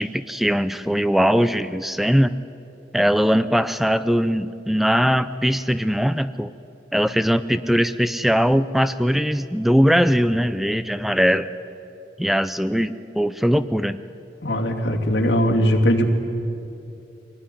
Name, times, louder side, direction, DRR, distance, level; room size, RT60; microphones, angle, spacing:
voice 1, 0.0-2.4 2.9-6.5 6.9-11.5 12.2-14.0, equal, ahead, 13 dB, 0.5 m, -20 dB
voice 2, 14.4-16.0, equal, 90° left, 0 dB, 2.7 m, -20 dB
24.0 x 18.0 x 10.0 m, 2.7 s
head